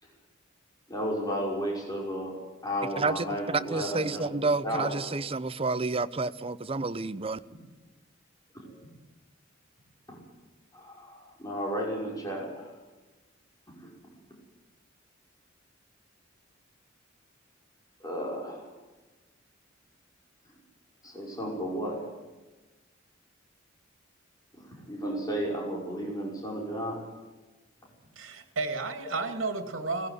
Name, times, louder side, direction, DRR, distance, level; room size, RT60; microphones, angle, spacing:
voice 1, 0.9-2.3 2.6-4.9 8.6-8.7 10.7-12.7 13.7-13.9 18.0-18.7 21.0-22.1 24.6-27.0 29.0-29.1, equal, 20° left, 5.7 m, -33 dB
voice 2, 3.0-3.3 3.7-7.4, right 3 dB, 30° right, 0.7 m, -30 dB
voice 3, 28.2-30.1, right 3 dB, 80° right, 2.3 m, -32 dB
18.5 x 15.5 x 9.5 m
head